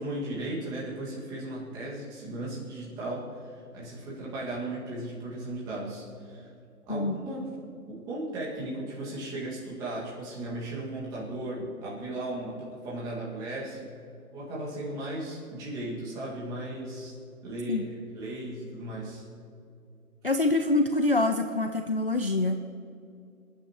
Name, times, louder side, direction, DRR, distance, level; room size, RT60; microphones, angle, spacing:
voice 1, 0.0-6.5 6.9-7.5 7.9-13.9 14.3-17.1 17.4-19.2, right 1 dB, 10° right, -6 dB, 1.8 m, -36 dB
voice 2, 20.2-22.6, left 2 dB, 40° left, 6 dB, 0.4 m, -25 dB
28.0 x 9.4 x 3.0 m, 2.5 s
hypercardioid pair, 160°, 45 cm